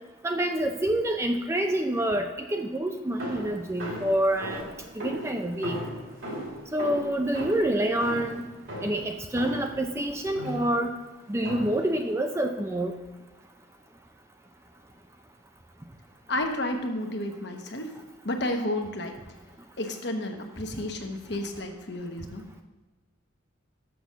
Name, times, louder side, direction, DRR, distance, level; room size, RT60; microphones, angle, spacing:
voice 1, 0.2-4.6 5.0-5.8 6.7-8.5 8.8-11.0 11.3-12.9, right 1 dB, 15° right, 5 dB, 0.4 m, -27 dB
sound 1, 3.2-9.8 10.3-10.8 11.4-11.9, equal, 70° right, 2.7 m, -37 dB
voice 2, 16.3-17.9 18.2-19.1 19.8-22.4, left 1 dB, 55° left, 4 dB, 1.0 m, -31 dB
6.9 x 6.2 x 6.1 m, 1.2 s
head